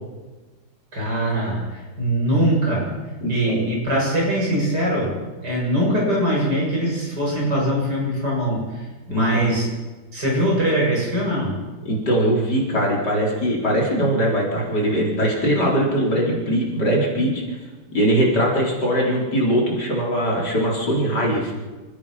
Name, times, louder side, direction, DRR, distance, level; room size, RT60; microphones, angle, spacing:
voice 1, 0.9-2.9 3.3-5.1 5.4-9.7 10.1-11.6, right 1 dB, 55° right, -3 dB, 7.9 m, -22 dB
voice 2, 3.2-3.6 9.1-9.5 11.8-17.6 17.9-21.5, equal, 55° left, -3 dB, 5.0 m, -21 dB
29.0 x 15.0 x 6.0 m, 1.2 s
omnidirectional pair, 2.1 m